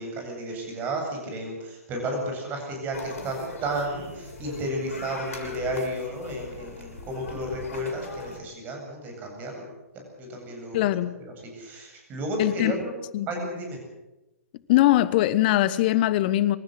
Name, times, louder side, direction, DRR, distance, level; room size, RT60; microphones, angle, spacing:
voice 1, 0.0-9.6 10.2-12.9 13.3-13.8, right 1 dB, 25° right, 8.0 m, -32 dB
sound 1, 2.9-8.4, left 3 dB, 65° left, 7.1 m, -39 dB
voice 2, 10.7-11.1 12.4-12.7 13.1-13.3 14.7-16.6, left 15 dB, 40° left, 1.1 m, -21 dB
26.5 x 14.5 x 7.9 m
figure-of-eight pair, 125°, 8 cm